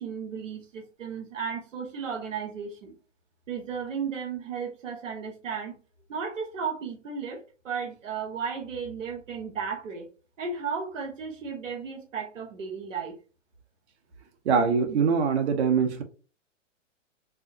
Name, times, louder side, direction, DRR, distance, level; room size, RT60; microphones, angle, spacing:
voice 1, 0.0-2.9 3.5-5.7 6.1-10.1 10.4-13.2, right 6 dB, 80° right, 1.2 m, -34 dB
voice 2, 14.4-16.0, right 6 dB, 60° right, 1.1 m, -23 dB
4.7 x 2.0 x 2.7 m
hypercardioid pair, 130°, 38 cm